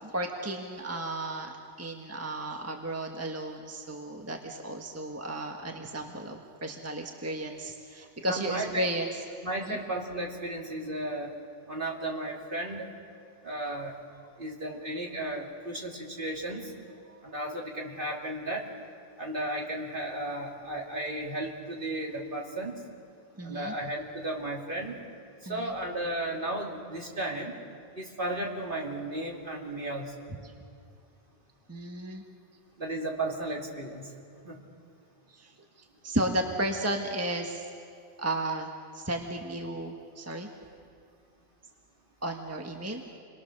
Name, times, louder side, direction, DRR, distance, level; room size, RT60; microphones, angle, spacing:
voice 1, 0.0-9.2 9.6-9.8 17.1-17.4 23.3-23.7 25.4-25.7 30.4-30.5 31.7-32.2 35.3-37.7 38.2-40.5 42.2-43.0, right 1 dB, 10° right, 2 dB, 1.4 m, -34 dB
voice 2, 8.3-8.9 9.4-11.3 11.7-12.9 13.4-14.0 14.4-16.7 17.2-18.7 19.2-22.8 23.4-25.0 25.5-27.5 28.0-30.1 32.8-34.1 34.4-34.6, right 1 dB, 45° right, -1 dB, 2.9 m, -34 dB
29.5 x 22.5 x 6.6 m, 2.4 s
omnidirectional pair, 1.3 m